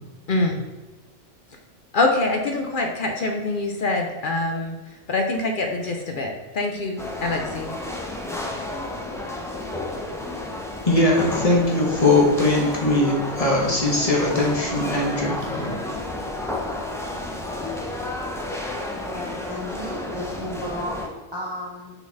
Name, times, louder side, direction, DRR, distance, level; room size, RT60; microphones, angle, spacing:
voice 1, 0.3-0.6 1.9-4.8 5.1-7.7, left 2 dB, 50° left, 3 dB, 0.7 m, -24 dB
sound 1, 7.0-21.1, left 2 dB, 5° left, 0.4 m, -31 dB
voice 2, 10.8-15.7, left 2 dB, 30° left, -2 dB, 1.1 m, -20 dB
voice 3, 19.1-21.9, equal, 20° right, -7 dB, 1.1 m, -34 dB
5.9 x 3.9 x 4.0 m, 1.2 s
omnidirectional pair, 1.3 m